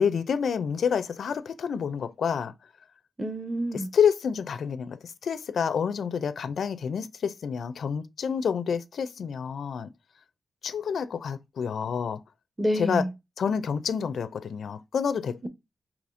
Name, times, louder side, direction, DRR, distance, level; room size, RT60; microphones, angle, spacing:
voice 1, 0.0-2.5 3.9-9.9 10.6-12.2 12.8-13.0 13.4-15.5, left 7 dB, 85° left, 0.4 m, -28 dB
voice 2, 3.2-3.9 12.6-13.1 15.4-15.5, equal, 10° right, 0.7 m, -28 dB
4.8 x 3.0 x 2.5 m
wide cardioid pair, 120°, 0 cm